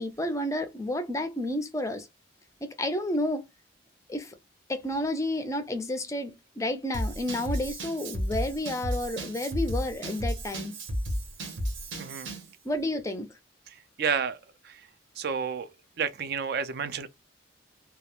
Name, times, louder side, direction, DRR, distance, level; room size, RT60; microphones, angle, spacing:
voice 1, 0.0-2.1 2.6-3.4 4.1-4.4 4.7-10.8 12.6-13.3, left 1 dB, 15° left, 0.4 m, -31 dB
Drum kit / Drum, 6.9-12.5, equal, 70° right, 0.8 m, -33 dB
voice 2, 12.0-12.3 13.7-14.4 14.6-14.9 15.2-15.7 16.0-17.1, right 6 dB, 50° right, 0.4 m, -31 dB
2.3 x 2.0 x 2.9 m
head